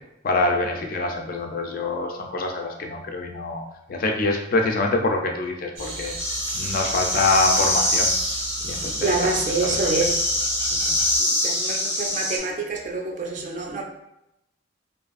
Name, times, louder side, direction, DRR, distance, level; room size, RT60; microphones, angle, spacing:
voice 1, 0.2-3.6 3.9-6.2 6.5-8.1 8.6-9.1 9.6-9.8 10.7-11.0, left 2 dB, 50° left, 3 dB, 0.3 m, -25 dB
sound 1, 5.8-11.2, right 2 dB, 80° right, 0.6 m, -34 dB
sound 2, 6.2-12.4, left 1 dB, 15° left, 0.6 m, -25 dB
voice 2, 8.9-10.3 11.2-13.8, right 3 dB, 40° right, 1 dB, 0.4 m, -26 dB
2.5 x 2.4 x 2.4 m, 0.86 s
head